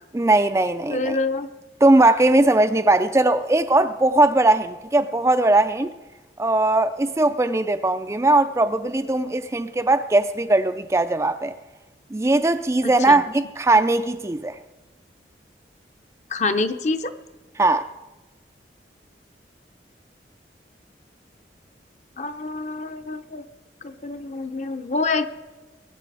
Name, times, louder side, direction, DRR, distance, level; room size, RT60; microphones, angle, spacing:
voice 1, 0.1-1.2 1.8-5.9 6.4-11.5 12.1-14.6 17.6-17.9, right 2 dB, 15° right, 0.3 m, -19 dB
voice 2, 0.9-1.5 12.8-13.2 16.3-17.1 22.2-23.4 23.8-25.3, left 3 dB, 40° left, 0.7 m, -26 dB
22.0 x 9.1 x 4.8 m
head